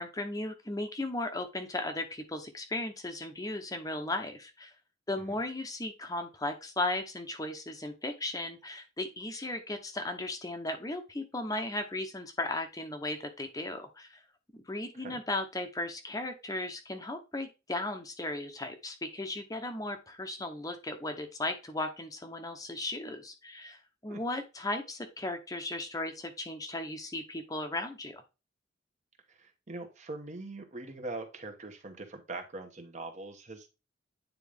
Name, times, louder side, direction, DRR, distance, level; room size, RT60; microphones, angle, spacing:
voice 1, 0.0-4.7 5.1-14.2 14.5-28.2, left 2 dB, 20° left, 6 dB, 0.8 m, -36 dB
voice 2, 29.3-33.7, right 2 dB, 40° right, 5 dB, 1.1 m, -42 dB
9.4 x 3.8 x 3.5 m, 0.28 s
head